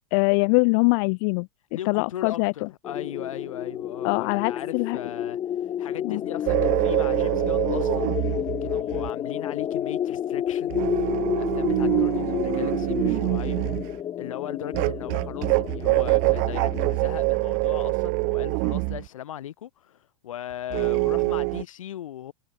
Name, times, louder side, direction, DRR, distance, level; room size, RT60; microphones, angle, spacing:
voice 1, 0.1-1.5 1.9-2.7 4.0-5.0 6.0-6.2, left 34 dB, 45° left, 0.5 m, -23 dB
voice 2, 1.7-5.4 5.8-8.1 8.6-13.6 14.2-20.0 20.2-22.3, left 11 dB, 70° left, 6.7 m, -38 dB
sound 1, 2.8-17.0, left 10 dB, 25° left, 1.2 m, -30 dB
sound 2, 6.5-9.1 10.7-14.0 14.7-19.1 20.7-21.6, right 39 dB, 50° right, 1.5 m, -25 dB
hypercardioid pair, 95°, 18 cm